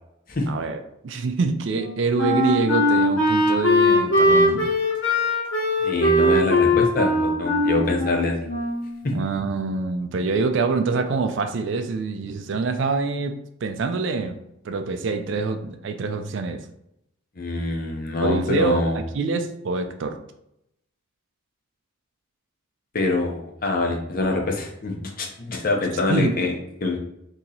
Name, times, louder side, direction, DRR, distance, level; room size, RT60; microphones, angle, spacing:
voice 1, 0.5-4.7 9.1-14.4 14.6-16.6 18.2-20.2 26.1-26.3, right 4 dB, 60° right, 8 dB, 0.3 m, -25 dB
Wind instrument woodwind instrument, 1.7-9.0, left 1 dB, 65° left, 1.3 m, -20 dB
voice 2, 5.8-8.3 9.0-9.1 17.4-19.0 22.9-26.5 26.8-27.0, left 2 dB, 45° left, 1 dB, 0.6 m, -24 dB
2.9 x 2.7 x 3.8 m, 0.80 s
head